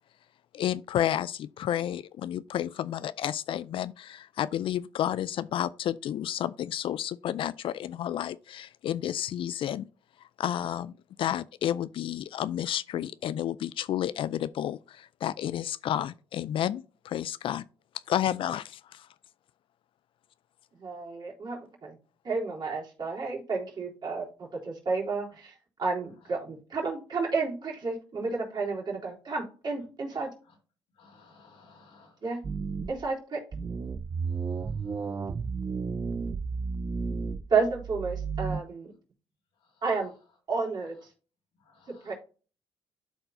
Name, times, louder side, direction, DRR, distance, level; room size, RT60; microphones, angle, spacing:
voice 1, 0.5-9.9 10.4-10.9 11.2-17.6 18.1-19.1, left 11 dB, 65° left, 0.4 m, -31 dB
voice 2, 20.8-22.0 22.2-30.3 32.2-32.4 32.9-33.4 37.5-38.9 39.8-40.1 40.5-41.0 42.0-42.1, right 4 dB, 50° right, 3.7 m, -31 dB
voice 3, 31.0-32.1 41.6-42.1, left 4 dB, 90° left, 3.4 m, -57 dB
sound 1, 32.4-33.1 33.5-38.6, right 5 dB, 35° right, 0.5 m, -33 dB
12.5 x 4.4 x 2.6 m
supercardioid pair, 70°, 9 cm